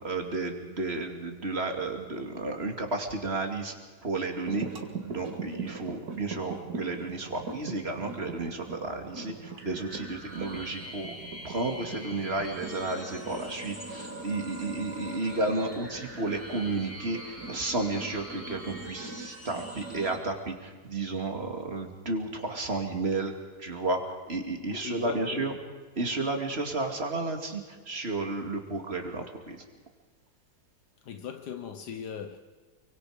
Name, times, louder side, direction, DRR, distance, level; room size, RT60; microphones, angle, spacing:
voice 1, 0.0-3.7 4.0-4.7 5.0-11.1 11.4-23.3 23.6-24.0 24.3-25.5 26.0-27.6 27.9-29.6, right 2 dB, 40° right, 2.8 m, -32 dB
sound 1, 4.4-20.2, right 4 dB, 65° right, 2.5 m, -42 dB
sound 2, 9.5-20.1, equal, 10° left, 4.6 m, -45 dB
voice 2, 24.6-25.5 31.1-32.4, left 7 dB, 85° left, 1.6 m, -39 dB
29.0 x 24.0 x 5.1 m
omnidirectional pair, 1.7 m